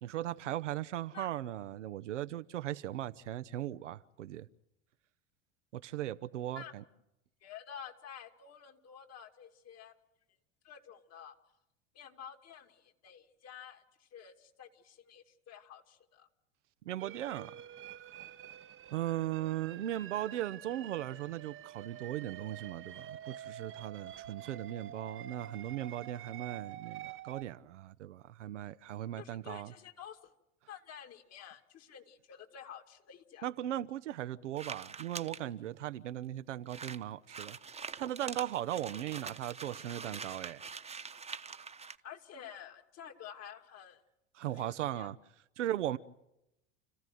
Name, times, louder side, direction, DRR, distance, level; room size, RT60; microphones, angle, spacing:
voice 1, 0.0-4.5 5.7-6.8 16.8-17.5 18.9-29.7 33.4-37.6 38.0-40.6 44.3-45.2 45.6-46.0, right 12 dB, 85° right, 0.9 m, -38 dB
voice 2, 7.4-10.0 10.6-11.3 11.9-16.3 29.2-30.3 30.7-33.5 42.0-44.0 44.5-45.1, left 8 dB, 45° left, 2.6 m, -50 dB
sound 1, 17.0-27.4, right 11 dB, 35° right, 0.9 m, -48 dB
sound 2, 34.5-35.4 36.1-36.2 36.4-36.5 36.7-42.0, right 5 dB, 15° right, 1.2 m, -45 dB
29.5 x 15.0 x 9.3 m
hypercardioid pair, 85°, 36 cm